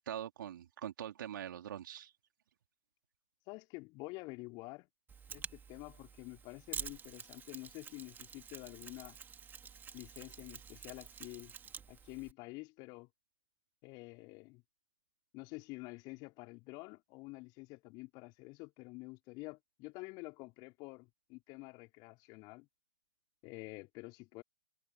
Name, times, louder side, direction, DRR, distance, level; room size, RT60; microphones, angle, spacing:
voice 1, 0.0-2.1, right 10 dB, 60° right, 3.7 m, -43 dB
voice 2, 3.4-4.9 5.3-9.2 9.9-11.5 11.9-13.1 13.8-14.6 15.3-22.7 23.4-24.4, left 25 dB, 35° left, 4.1 m, -48 dB
Mechanisms, 5.1-12.3, right 7 dB, 15° right, 3.0 m, -48 dB
figure-of-eight pair, 110°, 12 cm